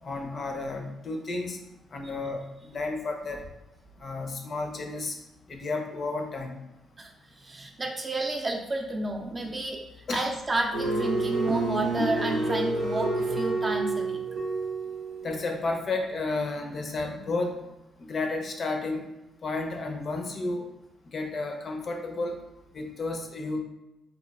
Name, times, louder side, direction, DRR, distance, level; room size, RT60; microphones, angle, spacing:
voice 1, 0.0-1.6 1.9-3.4 4.0-5.2 5.5-6.5 10.1-10.3 15.2-17.6 18.0-19.1 19.4-20.6 21.1-22.4 22.7-23.6, left 3 dB, 50° left, 2 dB, 0.5 m, -32 dB
voice 2, 7.4-14.2, right 2 dB, 30° right, 1 dB, 0.4 m, -31 dB
sound 1, 10.7-15.4, right 2 dB, 80° right, 0.6 m, -28 dB
2.9 x 2.3 x 2.3 m, 0.95 s
cardioid pair, 75°, 0 cm